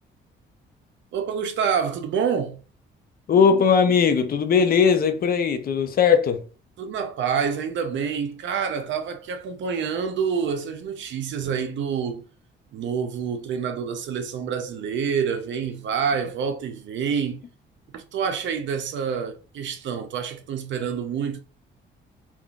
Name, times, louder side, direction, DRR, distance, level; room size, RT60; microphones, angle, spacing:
voice 1, 1.1-2.6 6.8-12.3 12.7-17.4 17.9-21.4, right 6 dB, 70° right, 0.7 m, -27 dB
voice 2, 3.3-6.4, left 6 dB, 50° left, 0.5 m, -19 dB
3.6 x 2.4 x 2.4 m
cardioid pair, 90°, 20 cm